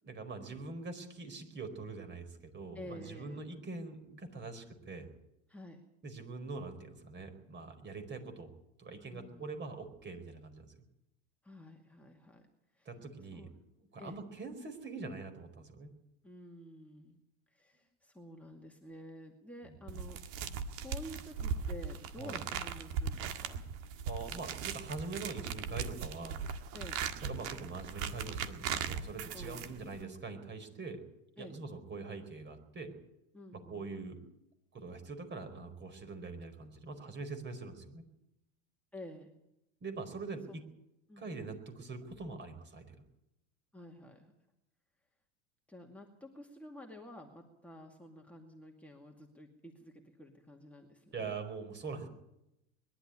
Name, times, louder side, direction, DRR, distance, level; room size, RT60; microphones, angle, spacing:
voice 1, 0.0-5.1 6.0-8.5 8.8-10.7 12.8-13.5 13.9-15.9 19.6-19.8 22.2-22.4 24.1-26.4 27.2-31.0 31.4-32.9 33.7-34.2 34.7-38.0 39.8-40.6 41.2-42.9 51.1-52.1, right 3 dB, 30° right, 7 dB, 4.7 m, -43 dB
voice 2, 2.7-3.4 5.5-5.8 9.1-9.5 11.4-12.5 12.7-12.9 13.3-13.6 14.0-14.2 16.2-17.2 17.5-23.6 26.7-27.0 29.3-29.7 31.4-31.6 33.3-33.9 38.9-39.3 40.5-40.6 41.1-41.4 43.7-44.3 45.7-51.3, equal, 5° left, 0 dB, 2.3 m, -50 dB
sound 1, 19.9-30.0, right 7 dB, 65° right, 1.9 m, -39 dB
21.5 x 12.0 x 9.9 m, 0.85 s
supercardioid pair, 105°, 37 cm